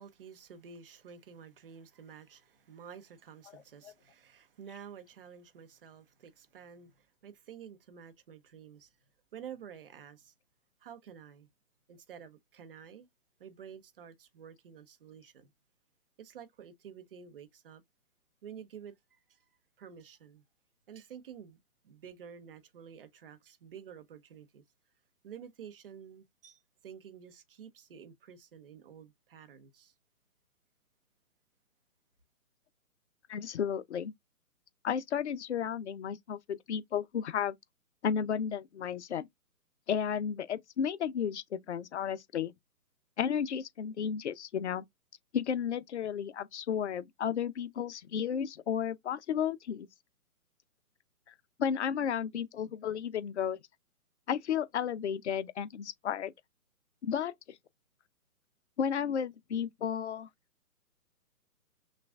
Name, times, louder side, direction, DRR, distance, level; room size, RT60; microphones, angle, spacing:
voice 1, 0.0-8.9 9.3-10.3 10.8-11.5 11.9-13.1 13.4-15.5 16.2-17.8 18.4-19.4 19.8-20.4 20.9-24.6 25.2-29.9, right 8 dB, 40° right, 0.8 m, -50 dB
voice 2, 33.3-34.1 34.8-37.6 38.0-39.3 39.9-42.5 43.2-44.8 45.3-49.9 51.6-53.6 54.3-56.3 57.0-57.3 58.8-60.3, left 8 dB, 50° left, 0.6 m, -33 dB
5.9 x 2.4 x 2.3 m
figure-of-eight pair, 140°, 45 cm